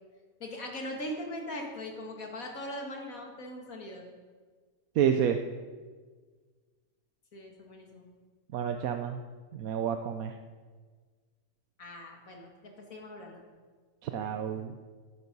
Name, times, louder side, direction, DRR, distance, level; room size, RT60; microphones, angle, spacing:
voice 1, 0.4-4.0 7.3-8.1 11.8-13.4, left 1 dB, 75° left, 1 dB, 2.6 m, -40 dB
voice 2, 5.0-5.4 8.5-9.2 9.5-10.3 14.0-14.7, right 8 dB, 80° right, 6 dB, 1.2 m, -29 dB
12.5 x 11.5 x 5.4 m, 1.5 s
omnidirectional pair, 1.5 m